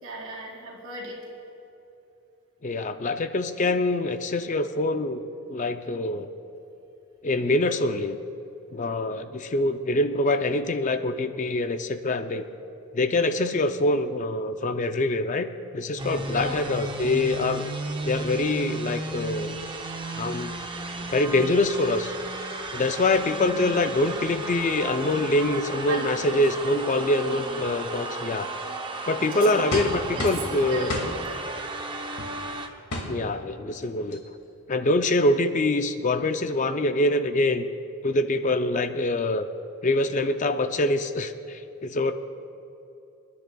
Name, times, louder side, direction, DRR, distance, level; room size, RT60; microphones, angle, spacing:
voice 1, 0.0-1.3 16.3-16.7 25.9-26.2 26.6-26.8 29.3-29.5 30.1-31.4, right 2 dB, 70° right, -3 dB, 2.7 m, -36 dB
voice 2, 2.6-6.3 7.2-8.2 8.7-12.5 12.9-15.5 15.7-17.7 18.1-19.6 20.2-20.5 21.1-22.1 22.7-28.5 29.1-30.9 33.1-34.2 34.7-37.7 38.0-39.5 39.8-42.1, left 2 dB, 35° left, 9 dB, 0.4 m, -25 dB
sound 1, 16.0-32.7, right 2 dB, 20° right, 0.6 m, -34 dB
sound 2, 29.7-30.5 30.9-31.1 32.2-32.3 32.9-33.1 33.8-33.9 34.1-34.4, left 1 dB, 85° left, 2.1 m, -30 dB
28.5 x 10.5 x 2.3 m, 2.8 s
head